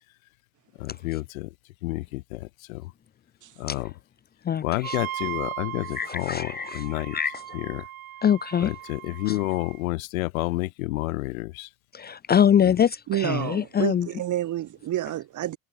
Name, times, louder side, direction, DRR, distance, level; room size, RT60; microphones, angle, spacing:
voice 1, 0.8-1.5 1.8-2.9 3.6-3.9 4.6-7.2 7.5-7.8 8.6-11.7 12.6-12.8, left 20 dB, 75° left, 0.9 m, -30 dB
voice 2, 4.5-5.0 6.0-6.8 7.1-7.6 8.2-8.7 9.3-9.4 11.9-14.1, left 8 dB, 25° left, 0.7 m, -23 dB
Wind instrument woodwind instrument, 4.8-9.8, right 13 dB, 80° right, 7.3 m, -38 dB
voice 3, 13.1-15.6, right 13 dB, 45° right, 4.8 m, -29 dB
hypercardioid pair, 85°, 41 cm